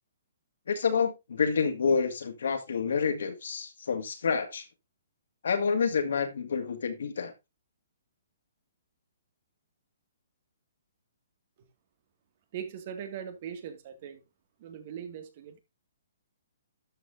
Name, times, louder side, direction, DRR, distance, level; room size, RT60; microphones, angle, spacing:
voice 1, 0.7-4.7 5.4-7.3, left 5 dB, 75° left, 2.0 m, -28 dB
voice 2, 12.5-14.2 14.6-15.6, right 8 dB, 45° right, 2.0 m, -40 dB
12.5 x 5.8 x 2.7 m
hypercardioid pair, 155°, 0 cm